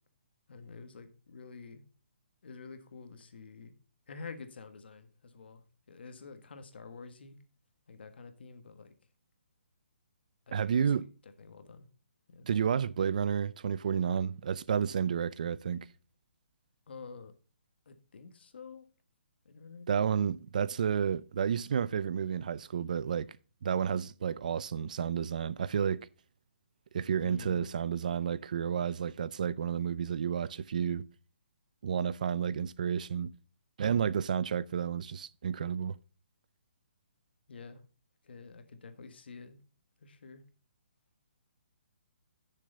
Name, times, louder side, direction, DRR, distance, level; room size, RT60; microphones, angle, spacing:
voice 1, 0.5-1.8 2.4-3.7 4.1-7.4 7.9-8.9 10.5-10.8 11.4-11.9 12.3-12.5 16.9-17.3 17.8-18.8 19.4-19.9 27.2-27.7 37.5-37.8 38.2-39.6 40.0-40.4, left 4 dB, 60° left, 1.5 m, -48 dB
voice 2, 10.5-11.0 12.4-15.9 19.9-23.3 23.6-26.1 26.9-31.1 31.8-33.3 33.8-36.0, right 7 dB, 40° right, 0.4 m, -31 dB
9.9 x 6.8 x 3.9 m
hypercardioid pair, 175°, 6 cm